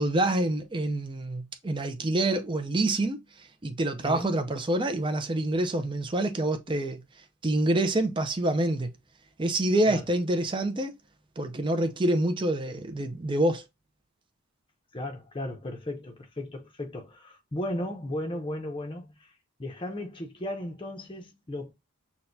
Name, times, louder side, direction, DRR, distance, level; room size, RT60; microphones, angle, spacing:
voice 1, 0.0-7.0 7.4-8.9 9.4-10.9 11.4-13.6, right 1 dB, 20° right, 0.5 m, -27 dB
voice 2, 14.9-19.3 19.6-21.7, left 1 dB, 20° left, 0.7 m, -35 dB
6.1 x 2.2 x 2.6 m
head